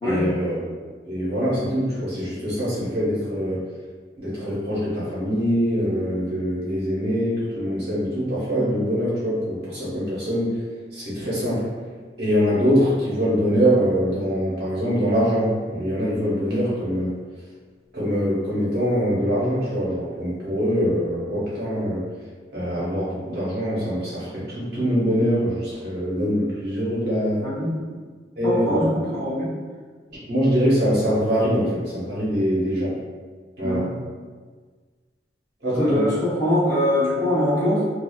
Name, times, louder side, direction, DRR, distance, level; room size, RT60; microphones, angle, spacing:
voice 1, 0.0-0.6 1.0-3.6 4.2-10.6 10.9-11.7 12.2-17.1 17.9-22.0 22.5-27.5 28.4-28.9 30.1-33.0 33.6-33.9 35.6-36.1, equal, 65° right, -8 dB, 1.0 m, -23 dB
voice 2, 28.4-29.5 33.6-33.9 35.7-37.9, left 1 dB, 20° left, -10 dB, 0.7 m, -23 dB
2.5 x 2.3 x 2.2 m, 1.5 s
head